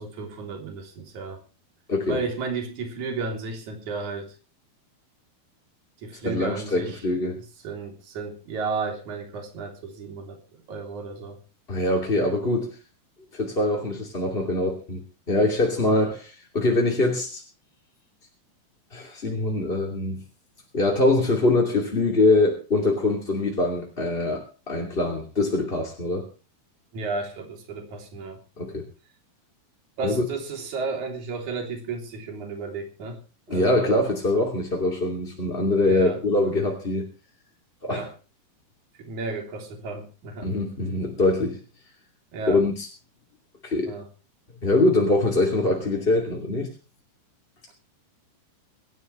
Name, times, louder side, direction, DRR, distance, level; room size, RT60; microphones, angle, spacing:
voice 1, 0.0-1.4 2.1-4.3 6.0-7.0 7.6-10.4 10.7-11.4 26.9-28.4 30.0-33.2 33.5-33.9 35.6-36.2 37.9-38.1 39.0-40.5 42.3-42.6 43.9-44.1, right 4 dB, 50° right, 3 dB, 4.6 m, -33 dB
voice 2, 6.2-7.4 11.7-12.8 13.3-15.0 15.3-17.4 18.9-20.2 20.7-26.3 28.6-28.8 30.0-30.2 33.5-37.1 37.8-38.1 40.4-41.6 42.5-42.9 43.6-43.9 44.6-46.7, left 2 dB, 15° left, 0 dB, 2.3 m, -23 dB
25.0 x 12.5 x 3.3 m, 0.34 s
omnidirectional pair, 4.7 m